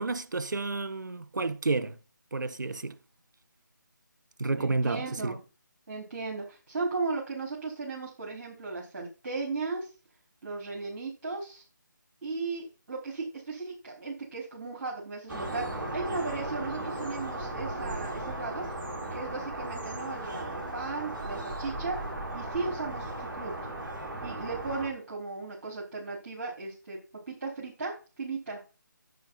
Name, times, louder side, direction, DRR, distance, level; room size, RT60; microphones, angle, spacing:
voice 1, 0.0-2.0 2.3-3.0 4.4-5.4, right 3 dB, 60° right, 1.4 m, -30 dB
voice 2, 4.6-5.4 5.9-9.9 10.4-11.6 12.2-18.6 19.1-23.5 24.2-27.0 27.3-28.6, right 3 dB, 35° right, 4.3 m, -36 dB
sound 1, 15.3-24.9, right 1 dB, 10° right, 4.5 m, -36 dB
10.0 x 8.4 x 5.8 m
figure-of-eight pair, 155°, 11 cm